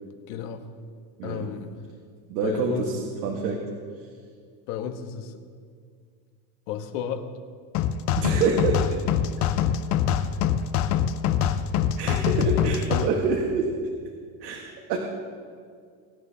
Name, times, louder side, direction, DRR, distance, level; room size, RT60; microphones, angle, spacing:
voice 1, 0.3-0.6 1.2-1.7 2.4-2.9 4.7-5.4 6.7-7.2, left 8 dB, 60° left, 6 dB, 1.3 m, -32 dB
voice 2, 1.2-1.5 2.3-3.6 8.2-9.0 12.0-13.8 14.4-15.0, right 4 dB, 80° right, 0 dB, 1.7 m, -27 dB
sound 1, 7.7-13.1, left 9 dB, 35° left, 0.5 m, -24 dB
22.0 x 10.0 x 2.8 m, 2.1 s
supercardioid pair, 140°, 50 cm